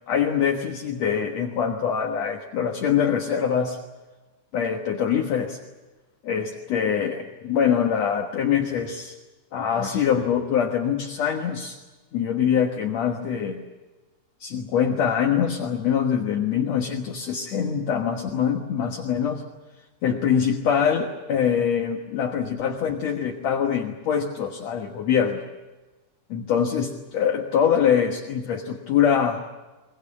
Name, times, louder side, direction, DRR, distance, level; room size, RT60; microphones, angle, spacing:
voice 1, 0.1-3.8 4.5-5.6 6.2-9.1 9.5-11.8 12.1-13.6 14.4-19.4 20.0-25.4 26.3-29.4, left 8 dB, 60° left, 2 dB, 2.5 m, -24 dB
23.0 x 21.0 x 8.6 m, 1.2 s
omnidirectional pair, 3.6 m